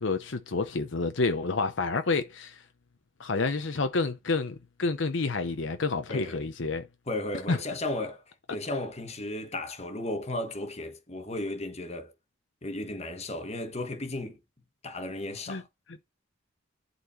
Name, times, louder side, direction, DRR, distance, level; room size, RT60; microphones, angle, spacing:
voice 1, 0.0-2.6 3.2-6.9 7.5-7.6 15.5-15.6, left 3 dB, 65° left, 0.8 m, -29 dB
voice 2, 7.1-8.2 8.5-12.1 12.6-14.4 14.8-15.6, left 1 dB, 35° left, 1.4 m, -34 dB
11.0 x 4.3 x 4.4 m
head